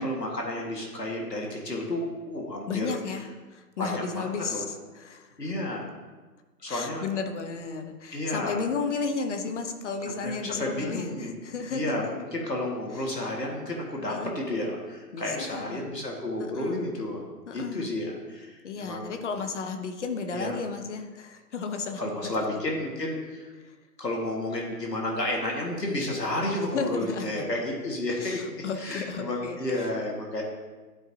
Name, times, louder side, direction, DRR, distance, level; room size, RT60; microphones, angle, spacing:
voice 1, 0.0-3.0 3.8-4.7 5.4-5.9 6.6-7.0 8.1-8.6 10.0-11.3 11.7-17.2 17.5-19.1 20.3-20.6 22.0-23.5 24.0-28.4 28.8-30.4, left 1 dB, 85° left, -1 dB, 1.9 m, -31 dB
voice 2, 2.7-5.6 6.7-12.1 13.0-13.1 14.1-14.3 15.1-15.9 16.4-17.0 17.5-17.9 18.6-22.3 23.6-23.7 26.7-27.5 28.2-29.9, left 4 dB, 45° left, 6 dB, 1.0 m, -34 dB
12.5 x 4.7 x 2.8 m, 1.3 s
figure-of-eight pair, 125°, 48 cm